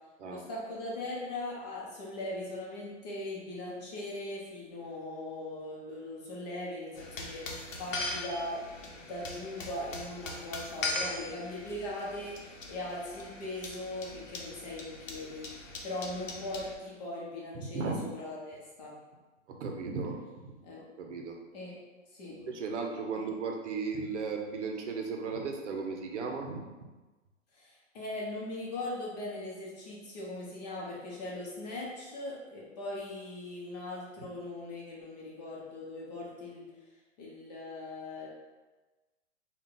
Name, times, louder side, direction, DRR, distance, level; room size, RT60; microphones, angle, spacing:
voice 1, 0.2-18.9 20.6-20.8 21.5-21.8 22.1-22.4 23.2-23.3 27.5-36.7 37.2-38.3, left 1 dB, 35° left, -4 dB, 0.9 m, -40 dB
sound 1, 7.0-16.7, left 2 dB, 80° left, 0.8 m, -40 dB
voice 2, 17.7-18.0 19.5-20.5 21.0-21.4 22.3-26.6 34.2-34.3, right 4 dB, 65° right, 2 dB, 0.7 m, -36 dB
3.7 x 2.4 x 3.6 m, 1.2 s
hypercardioid pair, 160°, 38 cm